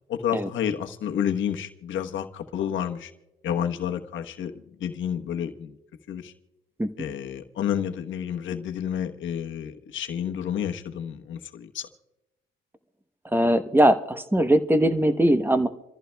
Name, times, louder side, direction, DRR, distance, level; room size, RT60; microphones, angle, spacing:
voice 1, 0.1-3.1 3.4-5.8 6.1-6.3 7.0-11.9, left 9 dB, 75° left, 1.1 m, -30 dB
voice 2, 13.3-15.7, right 1 dB, 10° right, 0.9 m, -20 dB
27.5 x 14.5 x 2.3 m
cardioid pair, 90°, 20 cm